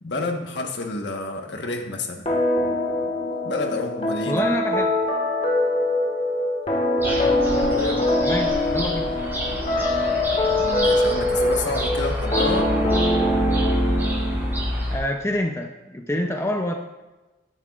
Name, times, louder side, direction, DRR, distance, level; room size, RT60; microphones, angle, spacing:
voice 1, 0.0-2.2 3.4-4.4 7.6-8.0 10.5-12.7, left 2 dB, 75° left, 3 dB, 1.3 m, -29 dB
sound 1, 2.3-14.6, left 1 dB, 35° left, 1.8 m, -23 dB
voice 2, 4.3-4.9 8.2-9.0 14.9-16.7, left 1 dB, 15° left, 3 dB, 0.5 m, -26 dB
sound 2, 7.0-15.0, equal, 15° right, 3.7 m, -28 dB
15.0 x 10.5 x 2.4 m, 1.1 s
head